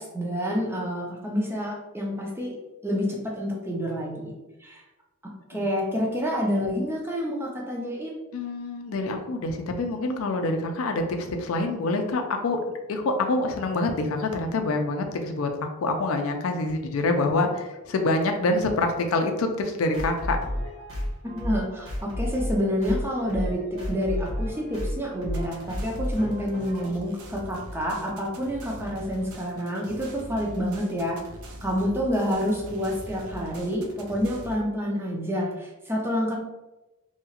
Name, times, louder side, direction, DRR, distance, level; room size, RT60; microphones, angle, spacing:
voice 1, 0.0-2.6 2.8-4.3 4.6-4.8 5.2-8.2 21.3-31.2 31.6-36.4, equal, 10° right, -2 dB, 0.4 m, -28 dB
voice 2, 8.3-12.6 12.9-15.5 15.8-20.4, left 2 dB, 70° left, 5 dB, 0.4 m, -26 dB
sound 1, 19.9-26.9, equal, 65° right, 1.5 m, -32 dB
sound 2, 25.3-34.6, right 1 dB, 85° right, 0.5 m, -42 dB
2.8 x 2.3 x 2.8 m, 1.0 s
head